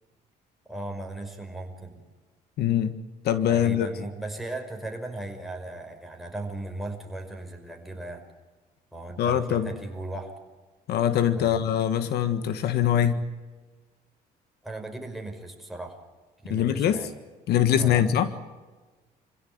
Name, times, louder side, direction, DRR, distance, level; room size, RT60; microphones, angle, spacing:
voice 1, 0.7-2.0 3.5-8.2 8.9-10.3 11.4-11.6 14.6-16.0 16.4-17.1 17.8-18.0, right 2 dB, ahead, 2 dB, 5.3 m, -37 dB
voice 2, 2.6-2.9 3.2-3.9 9.2-9.7 10.9-13.2 16.5-17.1 17.5-18.3, left 10 dB, 70° left, 11 dB, 1.6 m, -23 dB
27.5 x 16.5 x 9.6 m, 1.3 s
cardioid pair, 110°, 17 cm